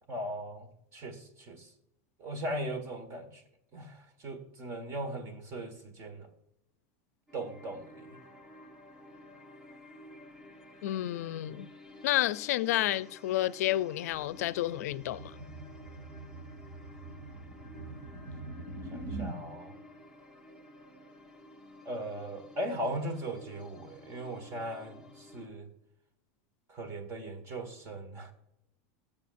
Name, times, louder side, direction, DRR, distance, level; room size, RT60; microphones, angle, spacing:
voice 1, 0.1-0.7 0.9-1.7 2.2-3.4 3.7-6.3 7.3-8.2 18.9-19.8 21.9-25.7 26.7-28.3, right 1 dB, 35° right, 1.8 m, -38 dB
sound 1, 7.3-25.5, left 1 dB, 10° right, 1.2 m, -53 dB
voice 2, 10.8-11.7 12.0-15.3, left 14 dB, 80° left, 0.4 m, -30 dB
sound 2, 14.1-19.4, right 2 dB, 75° right, 2.7 m, -43 dB
19.0 x 7.1 x 2.6 m
supercardioid pair, 150°, 8 cm